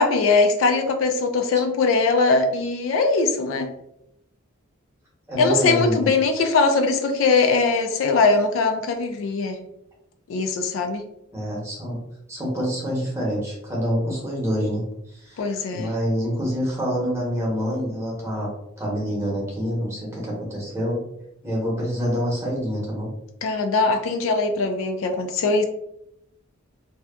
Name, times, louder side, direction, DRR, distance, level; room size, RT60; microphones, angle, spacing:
voice 1, 0.0-3.7 5.4-9.6 10.3-11.0 15.4-15.9 23.4-25.6, left 3 dB, 65° left, 6 dB, 0.3 m, -21 dB
voice 2, 5.3-6.1 11.3-12.0 12.3-18.5 18.8-21.0 21.4-23.1, equal, 15° right, -5 dB, 0.8 m, -26 dB
2.7 x 2.2 x 2.3 m, 0.80 s
head